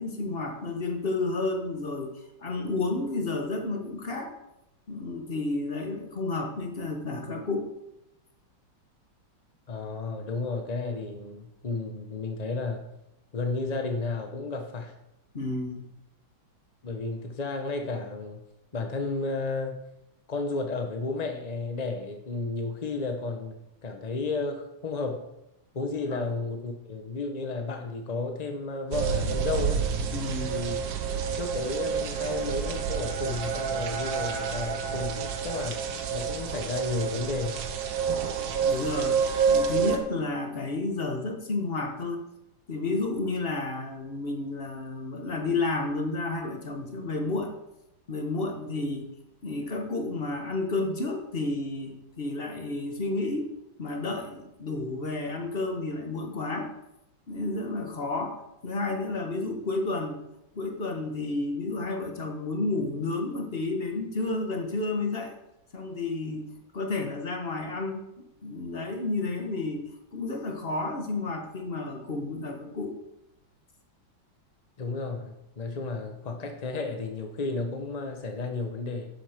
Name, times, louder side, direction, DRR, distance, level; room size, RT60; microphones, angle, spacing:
voice 1, 0.0-2.1 2.4-4.3 4.9-7.7 15.3-15.9 26.1-26.2 30.1-30.5 38.6-39.2 39.5-42.2 42.7-47.5 48.1-49.1 49.4-53.5 53.8-56.7 57.3-58.4 58.6-60.2 60.5-65.3 65.7-73.0, left 3 dB, 30° left, 3 dB, 1.4 m, -31 dB
voice 2, 9.7-12.9 13.3-14.9 16.8-18.4 18.7-19.7 20.3-23.6 23.8-25.3 25.7-29.8 30.5-30.8 31.3-35.8 36.1-37.6 74.8-79.1, left 3 dB, 50° left, 4 dB, 0.4 m, -32 dB
sound 1, 28.9-40.0, right 6 dB, 70° right, 1.7 m, -28 dB
11.5 x 7.6 x 5.1 m, 0.88 s
omnidirectional pair, 2.2 m